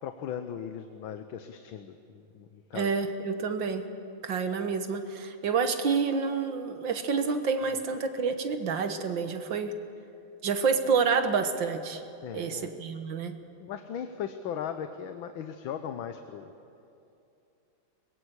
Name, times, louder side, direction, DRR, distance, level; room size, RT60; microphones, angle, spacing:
voice 1, 0.0-2.9 12.2-12.8 13.6-16.5, left 8 dB, 75° left, 8 dB, 1.7 m, -38 dB
voice 2, 2.7-3.9 4.2-9.7 10.4-12.0 12.3-13.4, right 5 dB, 70° right, 8 dB, 2.0 m, -28 dB
23.0 x 21.0 x 8.2 m, 2.7 s
omnidirectional pair, 2.2 m